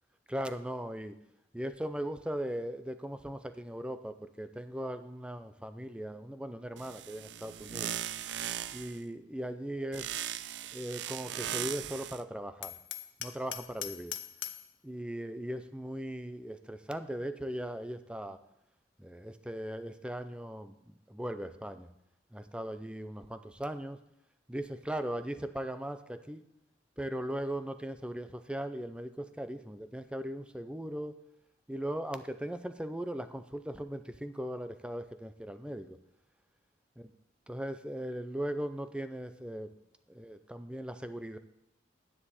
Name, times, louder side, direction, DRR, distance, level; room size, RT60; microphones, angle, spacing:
voice 1, 0.3-1.2 1.5-7.9 8.7-10.2 10.7-12.7 13.2-14.1 14.8-18.4 19.0-21.9 22.3-24.0 24.5-26.4 27.0-31.1 31.7-36.0 37.5-39.7 40.1-41.4, right 1 dB, 5° right, 10 dB, 0.5 m, -38 dB
sound 1, 6.8-9.0 9.9-12.2, right 11 dB, 70° right, 0.4 m, -38 dB
Hammer, 12.6-14.7, left 11 dB, 70° left, 0.7 m, -41 dB
9.9 x 9.8 x 4.2 m, 0.82 s
head